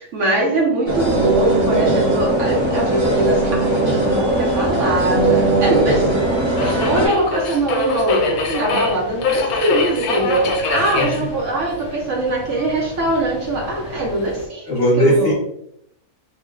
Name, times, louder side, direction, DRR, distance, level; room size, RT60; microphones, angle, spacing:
voice 1, 0.0-6.1 6.6-14.7 15.0-15.3, right 2 dB, 65° right, -1 dB, 0.9 m, -22 dB
sound 1, 0.9-7.1, right 2 dB, 85° right, 1.9 m, -19 dB
Subway metro underground, 3.9-14.4, left 4 dB, 80° left, 1.1 m, -26 dB
voice 2, 10.7-11.3 14.7-15.3, equal, 45° left, -5 dB, 1.1 m, -18 dB
4.7 x 2.1 x 2.4 m, 0.73 s
omnidirectional pair, 1.6 m